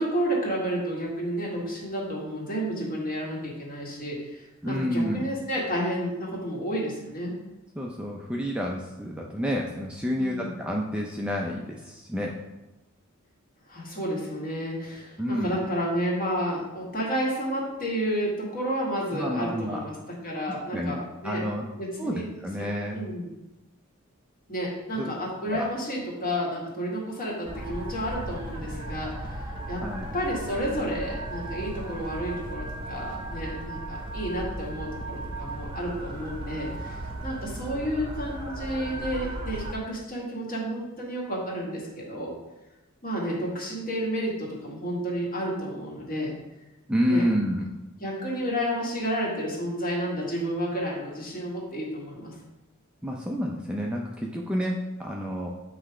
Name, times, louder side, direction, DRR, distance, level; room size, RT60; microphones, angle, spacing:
voice 1, 0.0-7.3 10.2-10.6 13.7-19.9 20.2-21.4 21.8-22.2 22.9-23.3 24.5-29.8 30.1-42.3 43.0-46.3 47.1-47.2 48.0-52.4, equal, 40° left, -3 dB, 1.8 m, -31 dB
voice 2, 4.6-5.2 7.8-12.4 15.2-15.6 19.1-19.8 20.7-21.0 21.2-21.7 22.0-23.0 25.0-25.1 25.5-25.7 29.8-30.1 46.9-47.6 53.0-55.5, equal, 5° right, -2 dB, 0.5 m, -29 dB
sound 1, 27.5-39.7, right 1 dB, 25° right, 0.9 m, -36 dB
7.8 x 3.3 x 4.9 m, 1.0 s
head